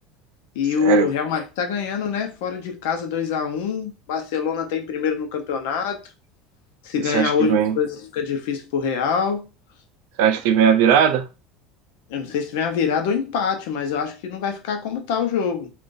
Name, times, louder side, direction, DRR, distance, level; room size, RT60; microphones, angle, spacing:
voice 1, 0.5-6.0 6.8-9.5 12.1-15.7, left 6 dB, 75° left, 0.7 m, -25 dB
voice 2, 7.0-7.8 10.2-11.3, right 8 dB, 65° right, 0.4 m, -18 dB
2.5 x 2.4 x 3.8 m
cardioid pair, 175°, 0 cm